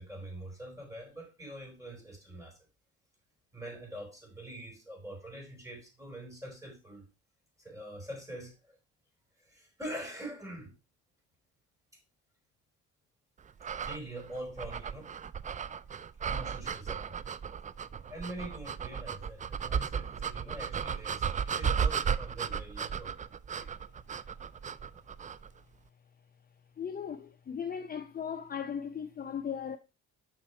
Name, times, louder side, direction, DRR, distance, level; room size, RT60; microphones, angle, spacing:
voice 1, 0.0-2.6 3.5-7.1 7.6-8.8 9.4-10.8 13.8-15.1 16.2-17.2 18.0-23.1, right 1 dB, 10° right, 4.5 m, -44 dB
sound 1, 13.6-25.5, right 7 dB, 25° right, 0.3 m, -35 dB
voice 2, 26.8-29.8, left 7 dB, 30° left, 0.6 m, -37 dB
6.4 x 5.9 x 4.3 m
cardioid pair, 90°, 30 cm